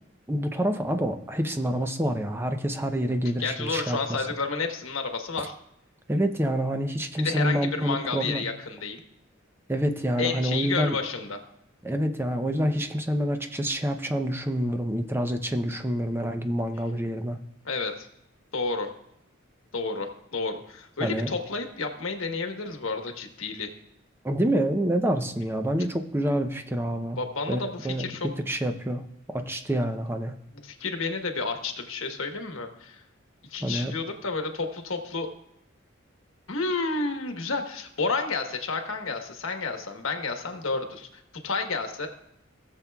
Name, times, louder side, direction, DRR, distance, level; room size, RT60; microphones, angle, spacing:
voice 1, 0.3-4.0 6.1-8.4 9.7-11.0 11.8-17.4 21.0-21.3 24.2-27.2 27.5-30.4 33.6-33.9, equal, 10° right, 6 dB, 0.6 m, -27 dB
voice 2, 3.4-5.5 7.2-9.0 10.2-11.4 17.6-18.1 18.5-18.9 19.7-23.7 27.2-28.3 30.6-33.0 33.5-35.3 36.5-42.1, left 4 dB, 85° left, 5 dB, 1.2 m, -31 dB
17.5 x 7.3 x 2.3 m, 0.78 s
head